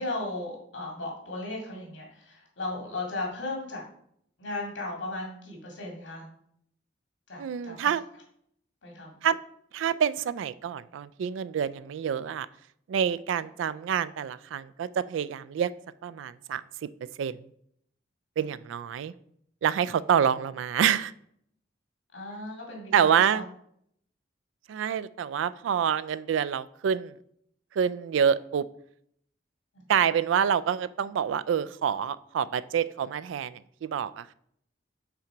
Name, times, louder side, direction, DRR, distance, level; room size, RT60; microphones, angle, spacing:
voice 1, 0.0-3.8 4.4-6.3 7.3-7.7 8.8-9.2 22.1-23.4, left 2 dB, 85° left, -1 dB, 2.2 m, -36 dB
voice 2, 7.4-8.0 9.2-9.4 9.7-12.5 12.9-15.7 16.0-16.6 17.2-17.4 18.4-19.1 19.6-21.1 22.9-23.4 24.7-27.1 27.7-28.6 29.9-34.3, right 8 dB, 90° right, 16 dB, 0.3 m, -27 dB
5.8 x 3.8 x 4.5 m, 0.68 s
head